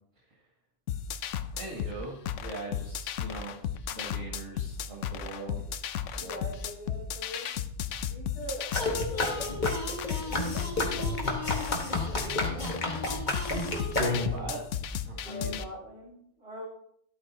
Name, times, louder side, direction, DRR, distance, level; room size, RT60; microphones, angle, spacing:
sound 1, 0.9-15.6, left 8 dB, 80° left, 1.0 m, -35 dB
voice 1, 1.5-5.7 6.1-6.4 13.6-14.6 15.1-15.6, right 2 dB, 80° right, -6 dB, 2.5 m, -41 dB
voice 2, 6.1-7.5 8.1-9.5 9.8-12.8 15.1-16.7, right 1 dB, 55° right, -6 dB, 5.6 m, -44 dB
sound 2, 8.7-14.5, left 2 dB, 35° left, 1.8 m, -30 dB
13.0 x 12.5 x 2.9 m, 0.70 s
omnidirectional pair, 1.3 m